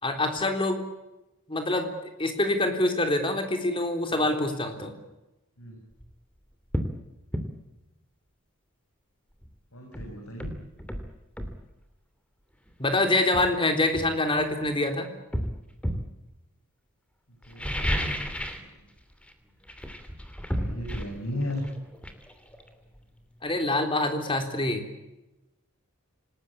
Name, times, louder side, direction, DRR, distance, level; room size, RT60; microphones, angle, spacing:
voice 1, 0.0-0.8 1.5-1.9 2.2-4.9 12.8-15.1 23.4-24.9, left 2 dB, 25° left, 6 dB, 3.6 m, -25 dB
sound 1, 5.9-6.1 6.7-7.0 7.3-7.5 9.4-9.5 9.9-11.6 12.7-12.8 13.3-14.7 15.3-16.1 17.4-18.7 19.0-19.3 19.6-23.2 23.5-23.6, equal, 5° left, 2.8 m, -32 dB
voice 2, 9.7-10.5 17.5-18.3 20.5-21.6, left 1 dB, 75° left, 1 dB, 6.4 m, -35 dB
27.5 x 20.0 x 8.5 m, 0.99 s
head